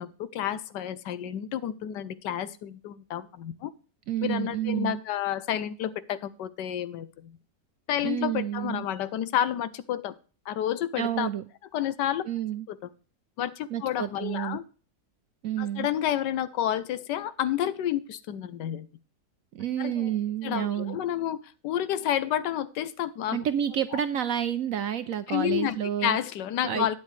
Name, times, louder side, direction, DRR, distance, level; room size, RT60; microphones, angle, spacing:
voice 1, 0.0-3.7 4.2-7.4 7.9-10.1 10.5-11.3 11.7-12.2 12.7-12.9 13.4-14.6 15.6-18.9 19.8-20.1 20.4-23.5 25.3-27.0, left 11 dB, 80° left, 16 dB, 1.3 m, -30 dB
voice 2, 4.1-5.0 8.0-8.8 11.0-11.4 12.3-12.7 13.7-14.6 15.4-15.9 19.5-21.0 23.3-26.2 26.6-26.9, right 10 dB, 70° right, 12 dB, 0.8 m, -29 dB
11.5 x 9.5 x 3.2 m, 0.37 s
omnidirectional pair, 1.9 m